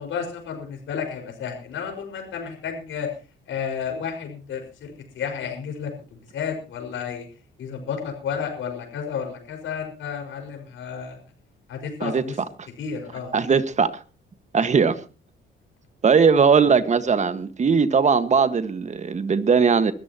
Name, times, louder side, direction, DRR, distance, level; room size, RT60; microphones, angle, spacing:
voice 1, 0.0-3.1 3.5-7.3 7.6-11.2 11.7-12.3 12.8-13.3, left 7 dB, 75° left, 5.4 m, -32 dB
voice 2, 13.3-14.0 14.5-15.0 16.0-19.9, right 5 dB, 35° right, 1.6 m, -19 dB
23.0 x 14.0 x 3.0 m
cardioid pair, 105°, 20 cm